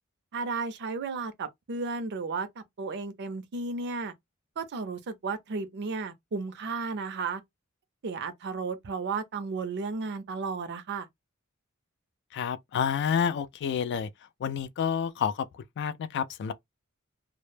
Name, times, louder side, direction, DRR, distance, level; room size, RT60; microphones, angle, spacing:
voice 1, 0.3-4.1 4.6-7.4 8.0-11.1, right 4 dB, 50° right, 0.5 m, -34 dB
voice 2, 12.3-14.1 14.4-16.5, left 7 dB, 50° left, 0.3 m, -29 dB
2.0 x 2.0 x 3.1 m
head